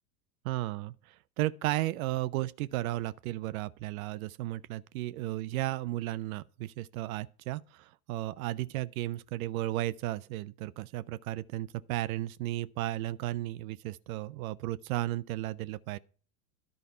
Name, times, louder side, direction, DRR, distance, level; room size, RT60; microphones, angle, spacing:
voice 1, 0.4-16.0, right 16 dB, 55° right, 0.6 m, -34 dB
11.0 x 5.2 x 5.5 m
hypercardioid pair, 95°, 50 cm